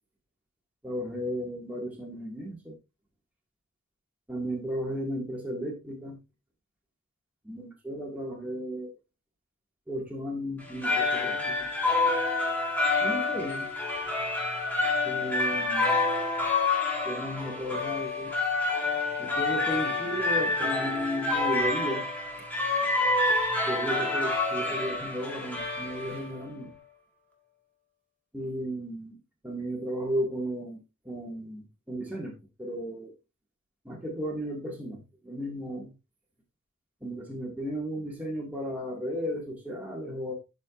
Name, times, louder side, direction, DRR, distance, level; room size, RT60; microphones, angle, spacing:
voice 1, 0.8-2.8 4.3-6.2 7.4-8.9 9.9-11.7 13.0-13.7 15.0-16.0 17.1-18.3 19.2-22.1 23.7-26.7 28.3-33.1 33.8-35.9 37.0-40.3, equal, 5° right, 2.0 m, -34 dB
sound 1, 10.6-26.5, left 3 dB, 10° left, 1.7 m, -28 dB
12.0 x 5.2 x 2.5 m
head